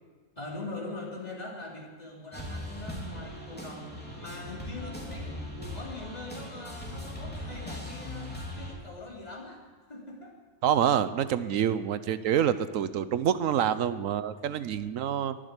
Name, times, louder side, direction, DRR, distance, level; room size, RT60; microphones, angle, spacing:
voice 1, 0.3-3.9 4.2-10.3 11.5-11.7 13.6-13.7, left 2 dB, 30° left, -3 dB, 3.3 m, -42 dB
sound 1, 2.3-8.7, left 1 dB, 5° left, 3.0 m, -39 dB
voice 2, 10.6-15.4, right 9 dB, 80° right, 13 dB, 1.1 m, -27 dB
22.5 x 7.7 x 8.2 m, 1.4 s
omnidirectional pair, 1.4 m